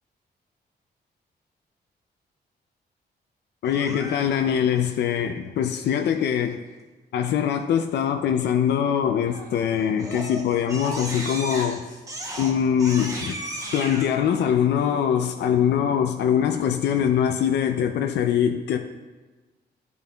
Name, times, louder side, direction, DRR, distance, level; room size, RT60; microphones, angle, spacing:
voice 1, 3.6-6.6 7.1-11.9 12.4-13.4 13.7-18.8, left 8 dB, 85° left, 0.4 m, -23 dB
Crying sobbing, 3.7-4.6 9.3-9.6 10.0-14.1, right 1 dB, 20° right, 0.8 m, -35 dB
12.0 x 5.4 x 2.3 m
wide cardioid pair, 180°, 17 cm